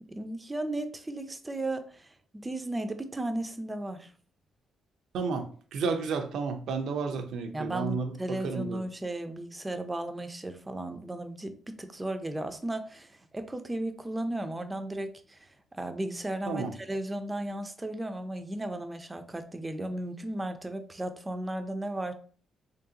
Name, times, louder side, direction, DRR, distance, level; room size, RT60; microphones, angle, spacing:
voice 1, 0.1-4.1 7.5-15.4 15.7-22.1, right 1 dB, 15° right, 0.5 m, -35 dB
voice 2, 5.1-8.8 16.5-16.7, right 4 dB, 75° right, 0.6 m, -32 dB
3.8 x 3.2 x 2.8 m
cardioid pair, 90°, 0 cm